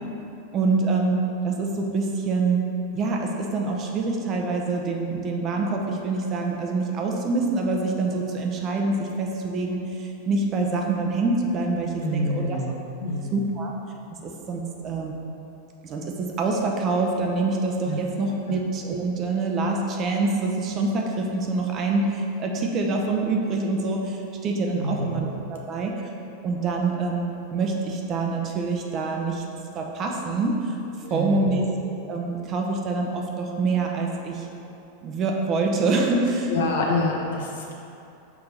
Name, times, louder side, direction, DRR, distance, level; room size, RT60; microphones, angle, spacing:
voice 1, 0.5-1.2 1.4-2.6 2.9-12.6 13.3-13.7 14.2-15.1 15.8-25.9 26.4-29.4 29.7-30.7 31.1-31.7 32.1-34.4 35.0-36.5, right 3 dB, 35° right, 1 dB, 0.8 m, -25 dB
voice 2, 12.0-12.7 13.0-13.4 17.8-18.0 24.8-25.2 31.0-31.6 36.5-37.7, left 1 dB, 80° left, -1 dB, 1.0 m, -27 dB
4.8 x 3.6 x 5.7 m, 2.8 s
hypercardioid pair, 120°, 0 cm